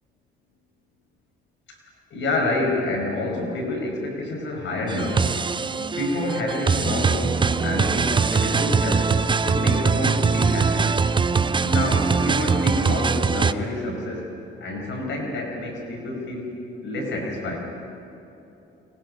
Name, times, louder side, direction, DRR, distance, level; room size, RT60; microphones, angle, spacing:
voice 1, 2.1-5.2 5.8-9.2 9.4-11.0 11.6-14.3 14.6-17.6, left 2 dB, 70° left, 1 dB, 5.4 m, -28 dB
sound 1, 4.9-13.5, right 5 dB, 25° right, 0.6 m, -22 dB
28.5 x 23.5 x 5.5 m, 3.0 s
cardioid pair, 90°, 20 cm